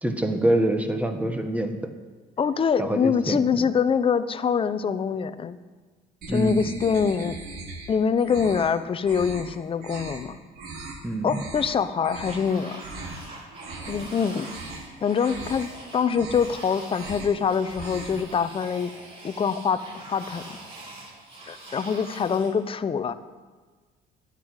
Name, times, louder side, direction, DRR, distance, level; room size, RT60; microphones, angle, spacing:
voice 1, 0.0-1.7 2.8-3.4 6.3-6.6 11.0-11.4, right 1 dB, 10° right, 6 dB, 1.4 m, -25 dB
voice 2, 2.4-5.6 6.3-7.4 7.9-10.4 11.2-12.8 13.9-14.5 15.0-18.9 19.2-20.6 21.5-23.1, left 6 dB, 30° left, 12 dB, 0.7 m, -24 dB
sound 1, 6.2-7.9 8.2-8.7 9.0-9.5 9.8-10.2 10.6-11.0 11.3-11.7 12.0-12.4 12.8-13.2 13.5-14.1 14.4-14.8 15.2-15.7 16.0-16.6 16.9-17.4 17.6-18.2, right 3 dB, 70° right, 4.1 m, -39 dB
sound 2, 12.2-22.5, right 2 dB, 35° right, 4.9 m, -43 dB
11.0 x 8.4 x 9.8 m, 1.4 s
cardioid pair, 110°, 17 cm